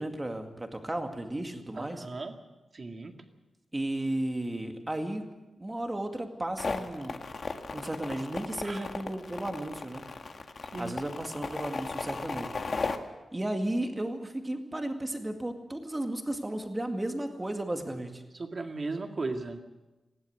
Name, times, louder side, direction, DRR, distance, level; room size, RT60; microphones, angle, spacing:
voice 1, 0.0-2.1 3.7-5.3 5.6-7.2 7.5-10.1 10.8-12.6 13.3-18.2, right 1 dB, 15° right, 4 dB, 2.2 m, -34 dB
voice 2, 1.7-2.3 2.7-3.2 8.6-8.9 10.7-10.9 18.3-19.6, right 3 dB, 40° right, 4 dB, 2.1 m, -36 dB
sound 1, 6.6-13.0, left 4 dB, 45° left, 1.6 m, -35 dB
19.5 x 16.5 x 8.0 m, 1.1 s
wide cardioid pair, 140°, 0 cm